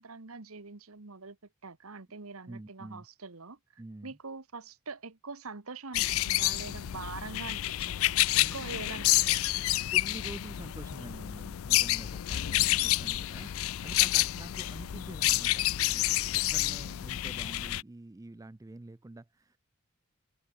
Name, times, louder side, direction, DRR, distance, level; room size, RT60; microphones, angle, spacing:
voice 1, 0.0-1.4 1.6-3.6 4.0-9.5, right 4 dB, 75° right, 1.4 m, -44 dB
voice 2, 2.5-3.1 3.8-4.2 8.3-8.6 9.9-19.6, right 2 dB, 15° right, 0.4 m, -47 dB
sound 1, 5.9-17.8, left 16 dB, 70° left, 0.4 m, -29 dB
head